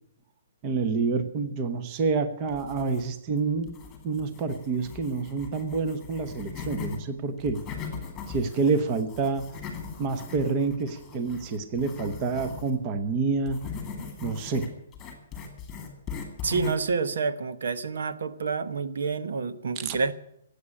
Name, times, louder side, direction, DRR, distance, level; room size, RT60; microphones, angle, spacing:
voice 1, 0.6-3.7 4.0-7.6 8.3-9.5 10.0-13.6 14.2-14.7 19.8-20.0, right 4 dB, 20° right, 9 dB, 0.9 m, -28 dB
sound 1, 2.5-3.3 3.7-7.0 7.4-12.7 13.5-16.9, left 6 dB, 10° left, 2.3 m, -39 dB
voice 2, 16.4-20.1, right 4 dB, 70° right, 12 dB, 1.0 m, -28 dB
16.5 x 8.4 x 9.9 m, 0.76 s
hypercardioid pair, 175°, 0 cm